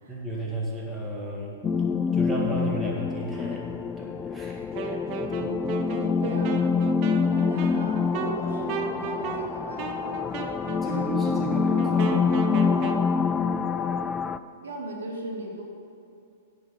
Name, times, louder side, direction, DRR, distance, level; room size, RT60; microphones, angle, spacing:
voice 1, 0.1-1.6 2.1-3.7 4.0-4.6 10.8-12.5, right 1 dB, 5° right, -4 dB, 1.8 m, -33 dB
sound 1, 1.6-14.4, left 5 dB, 20° left, 0.3 m, -26 dB
Wind instrument woodwind instrument, 4.7-13.1, right 7 dB, 40° right, 0.8 m, -35 dB
voice 2, 6.2-6.6 7.3-10.1 10.8-11.0 14.6-15.6, right 1 dB, 90° right, 0 dB, 1.9 m, -37 dB
10.5 x 5.0 x 7.9 m, 2.5 s
hypercardioid pair, 135°, 0 cm